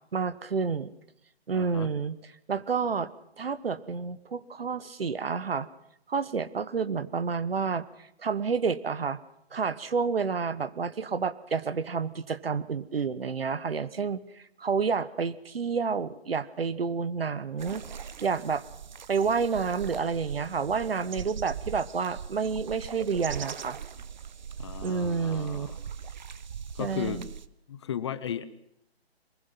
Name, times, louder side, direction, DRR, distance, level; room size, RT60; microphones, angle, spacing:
voice 1, 0.1-0.9 1.5-2.2 2.5-3.1 3.4-5.7 6.1-7.9 8.2-9.2 9.5-17.8 18.2-18.6 19.1-23.8 24.8-25.7 26.8-27.3, right 5 dB, 65° right, 16 dB, 1.3 m, -29 dB
voice 2, 1.5-1.9 24.6-25.8 26.8-27.2 27.7-28.4, left 9 dB, 25° left, 14 dB, 0.8 m, -35 dB
sound 1, 17.6-27.5, right 7 dB, 45° right, 0.9 m, -40 dB
23.0 x 21.0 x 5.9 m, 0.78 s
figure-of-eight pair, 145°, 32 cm